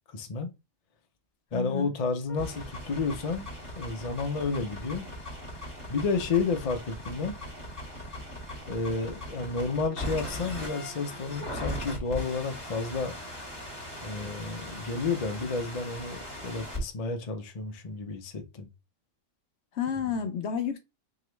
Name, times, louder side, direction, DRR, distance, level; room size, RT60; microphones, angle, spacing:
voice 1, 0.1-0.5 1.5-5.1 5.9-7.3 8.7-13.2 14.0-18.7, left 4 dB, 40° left, 0.6 m, -31 dB
voice 2, 1.5-1.9 19.7-20.8, left 7 dB, 65° left, 0.9 m, -30 dB
sound 1, 2.3-16.8, left 1 dB, 15° right, 1.8 m, -39 dB
3.8 x 2.9 x 3.1 m
omnidirectional pair, 1.3 m